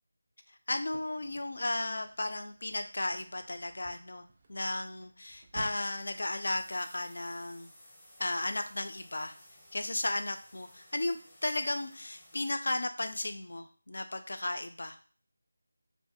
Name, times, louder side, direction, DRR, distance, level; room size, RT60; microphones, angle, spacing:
voice 1, 0.7-7.7 8.2-9.3 9.7-15.0, left 2 dB, 65° left, 8 dB, 0.3 m, -35 dB
sound 1, 0.7-6.6, right 3 dB, 30° right, 0.3 m, -53 dB
sound 2, 5.5-12.5, left 1 dB, 15° left, 0.6 m, -58 dB
2.3 x 2.1 x 2.8 m, 0.42 s
figure-of-eight pair, 170°, 0 cm